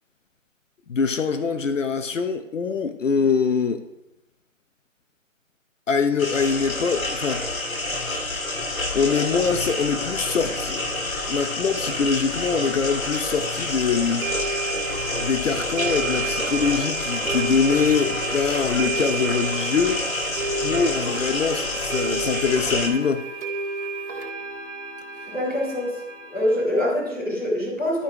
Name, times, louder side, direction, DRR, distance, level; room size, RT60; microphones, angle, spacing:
voice 1, 0.9-3.8 5.9-7.5 8.9-10.8 11.3-14.2 15.2-20.3 20.6-23.3, left 5 dB, 65° left, 9 dB, 0.7 m, -23 dB
sound 1, 6.2-22.9, left 2 dB, 85° left, 2.4 m, -28 dB
sound 2, 13.1-13.2 14.2-26.6, right 4 dB, 55° right, 2.1 m, -31 dB
voice 2, 25.3-26.0 26.3-28.0, left 1 dB, 5° left, -11 dB, 1.8 m, -24 dB
11.5 x 4.8 x 4.7 m, 0.89 s
hypercardioid pair, 170°, 40 cm